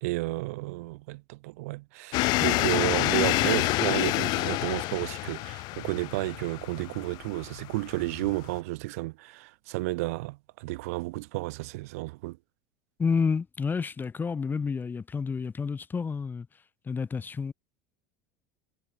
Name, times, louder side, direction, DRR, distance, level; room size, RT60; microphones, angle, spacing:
voice 1, 0.0-12.4, right 22 dB, 75° right, 3.1 m, -32 dB
sound 1, 2.1-8.6, left 22 dB, 60° left, 1.6 m, -28 dB
voice 2, 13.0-16.5 16.8-17.5, left 5 dB, 25° left, 3.2 m, -29 dB
hypercardioid pair, 90°, 8 cm